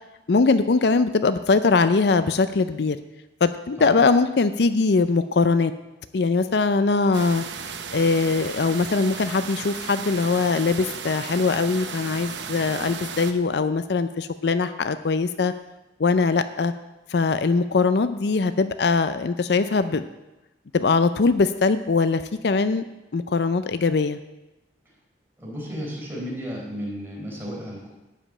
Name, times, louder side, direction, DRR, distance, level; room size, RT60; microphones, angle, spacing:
voice 1, 0.3-3.0 3.4-5.7 6.1-7.5 7.9-15.5 16.0-16.7 17.1-20.1 20.7-22.8 23.1-24.2, left 4 dB, 65° left, 11 dB, 0.5 m, -21 dB
sound 1, 7.1-13.3, right 6 dB, 80° right, 0.8 m, -35 dB
voice 2, 25.4-27.9, equal, 15° right, -3 dB, 3.9 m, -33 dB
12.0 x 5.1 x 8.7 m, 1.0 s
head